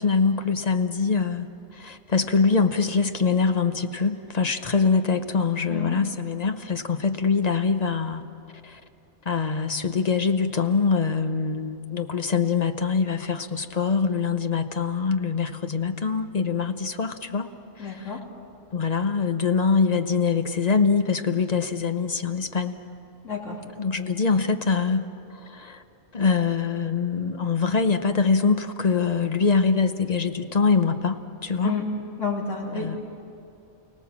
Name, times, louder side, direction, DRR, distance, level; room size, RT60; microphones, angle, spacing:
voice 1, 0.0-1.5 1.8-8.2 9.3-17.5 18.7-22.8 23.8-25.1 25.6-25.8 26.1-31.7 32.7-33.0, left 5 dB, 35° left, 8 dB, 0.8 m, -23 dB
voice 2, 5.7-6.0 17.8-18.2 23.2-23.6 31.6-31.9 32.2-32.9, left 5 dB, 65° left, -3 dB, 3.6 m, -30 dB
29.5 x 18.0 x 7.3 m, 2.7 s
omnidirectional pair, 1.4 m